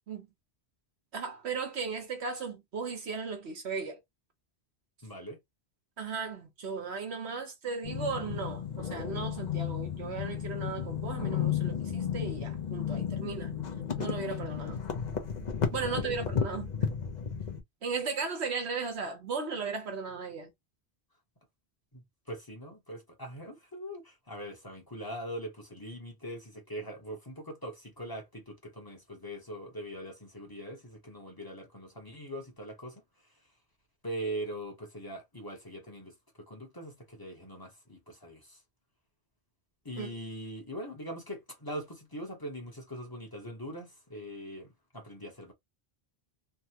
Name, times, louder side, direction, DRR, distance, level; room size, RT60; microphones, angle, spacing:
voice 1, 1.1-4.0 6.0-13.5 14.0-14.8 15.7-16.7 17.8-20.5 40.0-40.1, right 5 dB, 90° right, 1.4 m, -36 dB
voice 2, 5.0-5.4 15.7-16.2 21.9-33.0 34.0-38.6 39.8-44.7 44.9-45.5, right 1 dB, 20° left, 1.0 m, -42 dB
sound 1, 7.8-17.6, left 8 dB, 45° left, 0.8 m, -33 dB
3.5 x 2.2 x 2.9 m
omnidirectional pair, 1.1 m